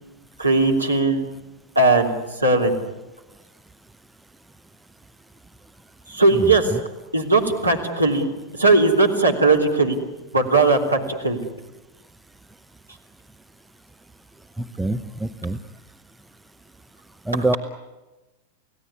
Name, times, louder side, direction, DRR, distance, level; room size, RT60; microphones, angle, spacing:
voice 1, 0.4-1.3 1.7-2.1 2.4-2.7 6.1-6.7 7.1-8.3 8.6-10.0 10.3-11.4 17.3-17.4, right 3 dB, 85° right, 1 dB, 3.3 m, -18 dB
voice 2, 6.3-6.8 14.6-15.6 17.3-17.6, right 2 dB, 5° right, 10 dB, 0.9 m, -25 dB
29.5 x 17.5 x 9.8 m, 1.1 s
figure-of-eight pair, 90°, 0 cm